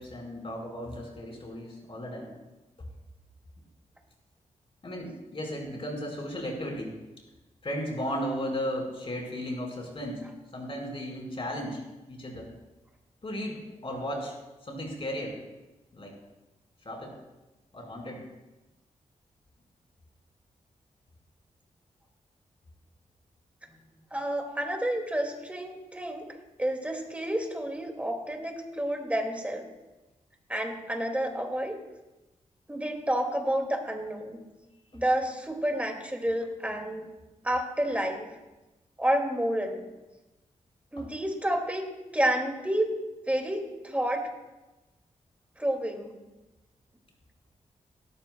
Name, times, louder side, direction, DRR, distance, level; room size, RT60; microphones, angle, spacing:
voice 1, 0.0-2.3 4.8-7.0 7.6-10.3 10.5-11.8 12.1-12.5 13.2-14.3 14.6-15.4 15.9-16.1 16.8-17.1 17.7-18.2 41.0-41.1, equal, 45° left, 0 dB, 4.6 m, -35 dB
voice 2, 24.1-26.3 26.6-29.6 30.5-31.8 32.7-34.4 34.9-37.1 37.4-38.3 39.0-39.8 40.9-41.8 42.1-42.9 43.3-44.3 45.6-46.1, right 1 dB, 10° right, 2 dB, 2.2 m, -29 dB
18.0 x 13.0 x 2.3 m, 1.1 s
cardioid pair, 75°, 13 cm